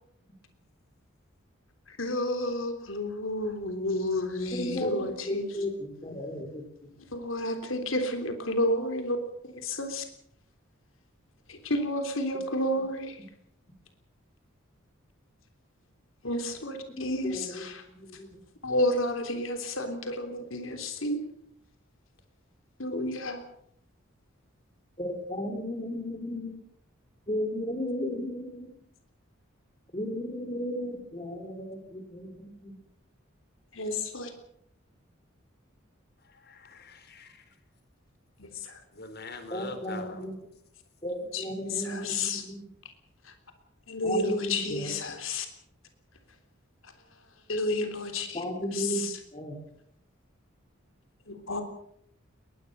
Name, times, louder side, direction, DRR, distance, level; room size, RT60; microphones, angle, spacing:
voice 1, 1.9-5.5 7.1-9.2 9.4-10.0 11.5-13.2 16.2-17.8 18.6-21.2 22.8-23.4 33.7-34.3 38.4-38.8 41.3-42.4 43.2-43.3 43.9-45.5 46.8-46.9 47.5-48.4 48.7-49.2 51.3-51.6, left 1 dB, 75° left, 6 dB, 3.4 m, -31 dB
voice 2, 4.5-6.7 16.9-18.4 25.0-26.6 27.3-28.7 29.9-32.7 39.5-40.4 41.0-42.7 44.0-44.9 48.3-49.6, equal, 25° left, 6 dB, 3.7 m, -35 dB
voice 3, 36.2-37.4 38.9-40.3, left 3 dB, 50° left, 9 dB, 4.2 m, -43 dB
21.5 x 21.5 x 6.8 m, 0.71 s
head